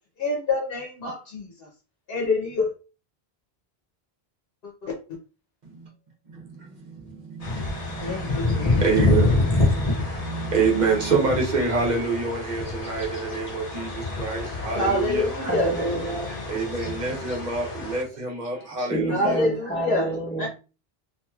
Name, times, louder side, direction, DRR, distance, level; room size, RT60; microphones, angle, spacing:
voice 1, 0.2-1.5 2.1-2.7 4.8-4.9 8.0-8.8 14.8-15.7 19.1-20.1 20.4-20.5, left 2 dB, 70° left, 1.0 m, -26 dB
voice 2, 6.9-15.3 16.5-19.5, right 4 dB, 45° right, 1.0 m, -27 dB
sound 1, 7.4-18.0, left 3 dB, 40° left, 0.8 m, -27 dB
voice 3, 15.3-16.4 18.5-20.5, right 2 dB, 15° left, 0.8 m, -28 dB
2.9 x 2.7 x 2.3 m
omnidirectional pair, 1.0 m